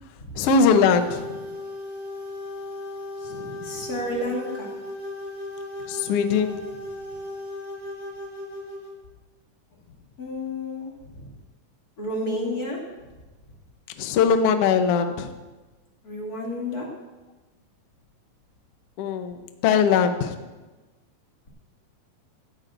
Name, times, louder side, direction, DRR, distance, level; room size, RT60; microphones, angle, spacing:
voice 1, 0.3-1.5 3.3-3.8 6.0-6.6 14.0-15.3 19.0-20.5, left 6 dB, 70° left, 7 dB, 1.4 m, -21 dB
sound 1, 0.5-8.9, left 1 dB, 55° right, 3.6 m, -36 dB
voice 2, 3.6-4.7 10.2-11.3 12.0-12.8 16.0-16.9, left 1 dB, 30° left, -3 dB, 2.7 m, -31 dB
16.5 x 15.0 x 2.6 m, 1.2 s
omnidirectional pair, 3.7 m